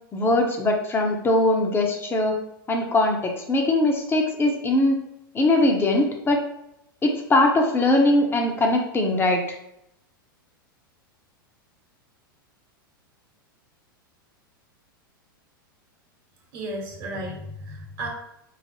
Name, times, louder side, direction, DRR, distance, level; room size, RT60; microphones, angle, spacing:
voice 1, 0.1-2.4 2.7-5.0 5.3-6.4 7.0-9.6, left 2 dB, 20° left, 2 dB, 0.7 m, -21 dB
voice 2, 16.5-18.1, right 1 dB, 50° right, -1 dB, 1.2 m, -33 dB
4.7 x 2.0 x 3.0 m, 0.80 s
hypercardioid pair, 100°, 12 cm